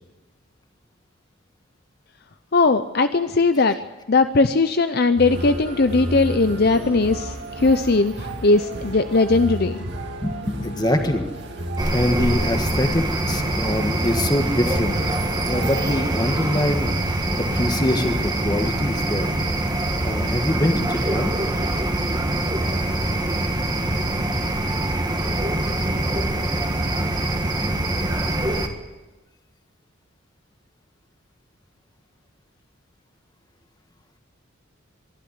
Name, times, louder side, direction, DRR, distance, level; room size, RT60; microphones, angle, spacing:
voice 1, 2.5-3.8 4.1-8.1 8.4-9.9, left 3 dB, 50° left, 10 dB, 0.6 m, -19 dB
sound 1, 5.2-16.2, right 1 dB, 55° right, 2.9 m, -32 dB
voice 2, 10.2-11.2 11.9-15.0 15.4-19.3 20.0-21.3, left 1 dB, 20° left, 6 dB, 1.6 m, -24 dB
sound 2, 11.8-28.7, right 1 dB, 20° right, 1.7 m, -24 dB
23.5 x 12.0 x 9.7 m, 1.1 s
head